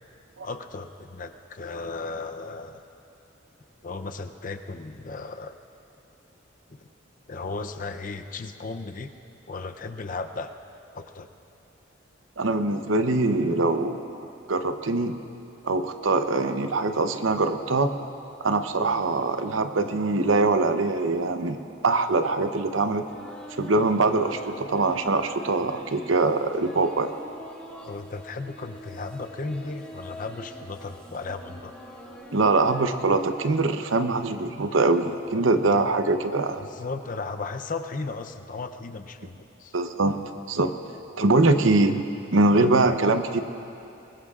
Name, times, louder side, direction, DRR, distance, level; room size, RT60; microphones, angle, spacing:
voice 1, 0.4-2.8 3.8-5.6 6.8-6.9 7.3-9.1 9.5-10.5 10.9-11.3 27.8-31.7 36.6-39.7 42.6-42.9, left 3 dB, 45° left, 7 dB, 0.6 m, -35 dB
voice 2, 12.4-14.0 14.5-15.1 15.6-17.9 18.4-21.6 21.8-23.0 23.6-27.1 32.3-36.6 39.7-40.2 40.5-40.7 41.2-42.0 42.3-43.4, right 3 dB, 80° right, 8 dB, 0.8 m, -23 dB
sound 1, 23.1-33.0, equal, 5° left, 2.2 m, -44 dB
23.5 x 20.5 x 2.5 m, 2.7 s
head